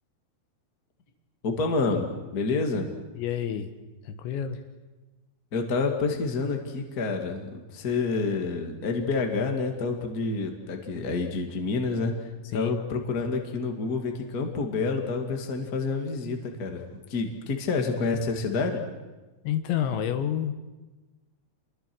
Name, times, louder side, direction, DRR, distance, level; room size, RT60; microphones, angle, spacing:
voice 1, 1.4-2.9 5.5-12.1 12.5-16.8 17.1-18.8, left 4 dB, 30° left, 3 dB, 1.8 m, -28 dB
voice 2, 3.2-3.7 4.1-4.6 12.5-12.8 19.5-20.5, left 9 dB, 75° left, 8 dB, 3.5 m, -29 dB
29.0 x 22.5 x 6.3 m, 1.2 s
omnidirectional pair, 5.3 m